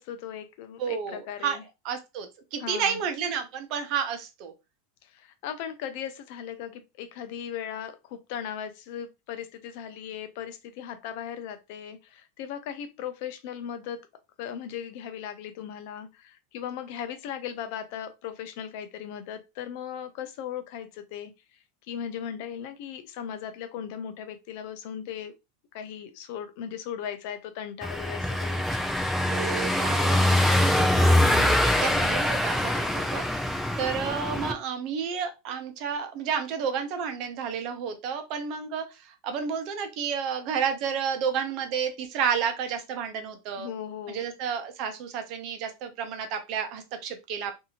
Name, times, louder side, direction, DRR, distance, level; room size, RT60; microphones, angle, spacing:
voice 1, 0.0-1.6 2.6-3.0 5.1-14.0 14.4-21.3 21.9-25.3 25.7-28.6 31.2-31.7 43.6-44.2, left 9 dB, 60° left, 0.5 m, -37 dB
voice 2, 0.8-1.6 1.8-4.5 29.2-43.7 44.1-47.5, right 7 dB, 50° right, 0.7 m, -31 dB
Car passing by / Engine, 27.8-34.5, left 1 dB, 5° left, 0.4 m, -24 dB
2.7 x 2.6 x 2.8 m
supercardioid pair, 140°, 0 cm